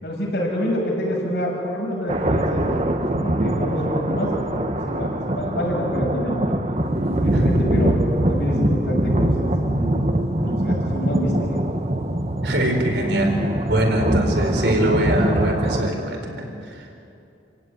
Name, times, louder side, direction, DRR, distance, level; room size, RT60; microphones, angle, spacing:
voice 1, 0.0-4.3 4.8-8.0 8.3-10.1 10.4-11.6, equal, 70° left, -3 dB, 6.7 m, -27 dB
sound 1, 2.1-15.9, right 1 dB, 35° right, 1.2 m, -23 dB
voice 2, 12.4-13.3 13.7-16.9, right 1 dB, 85° right, 1 dB, 4.7 m, -23 dB
28.5 x 16.5 x 9.5 m, 2.7 s
head